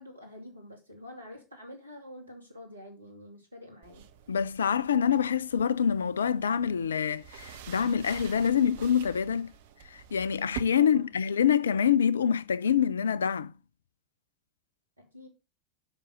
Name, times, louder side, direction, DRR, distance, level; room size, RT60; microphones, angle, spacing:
voice 1, 0.0-4.1 10.8-11.2 15.0-15.3, left 1 dB, 85° right, 2.6 m, -47 dB
sound 1, 3.8-10.6, right 11 dB, 60° right, 1.0 m, -47 dB
voice 2, 4.3-9.5 9.9-13.5, left 8 dB, 75° left, 0.5 m, -26 dB
7.6 x 6.1 x 6.5 m
figure-of-eight pair, 80°, 0 cm